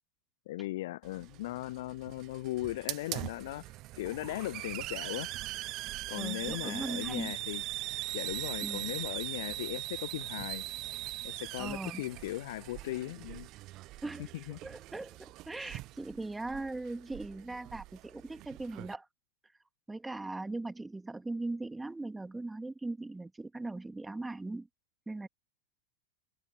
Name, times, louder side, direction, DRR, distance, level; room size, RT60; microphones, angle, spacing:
voice 1, 0.5-3.6 4.0-5.3 6.1-7.6 8.1-10.6 11.2-13.5 14.3-14.6, left 17 dB, 55° left, 0.4 m, -38 dB
Hiss, 1.0-18.9, right 18 dB, 40° right, 0.6 m, -41 dB
voice 2, 6.1-7.3 8.6-8.9 11.6-12.0 14.0-14.3 14.6-19.1 19.9-24.7 25.1-25.3, right 2 dB, 5° right, 3.1 m, -39 dB
figure-of-eight pair, 90°, 0 cm